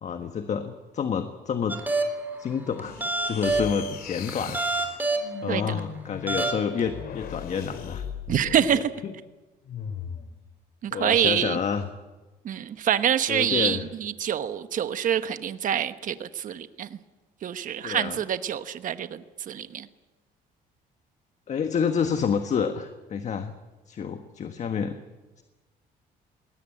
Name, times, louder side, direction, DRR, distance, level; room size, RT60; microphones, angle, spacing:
voice 1, 0.0-1.8 2.4-3.0 3.3-4.6 5.4-8.1 8.4-9.1 10.9-11.9 13.3-13.9 17.8-18.2 21.5-23.5 23.9-24.9 25.4-25.5, left 6 dB, 45° left, 8 dB, 1.4 m, -29 dB
sound 1, 1.7-2.3 2.8-3.8 4.3-5.3 5.8-5.9 6.3-6.8, right 2 dB, 10° right, 3.6 m, -26 dB
sound 2, 2.8-8.8 9.6-10.3, left 7 dB, 60° left, 2.6 m, -38 dB
voice 2, 8.3-8.9 10.8-11.6 12.4-16.9 17.4-19.9, right 9 dB, 50° right, 11 dB, 1.1 m, -26 dB
20.5 x 18.0 x 8.9 m, 1.2 s
cardioid pair, 110°, 17 cm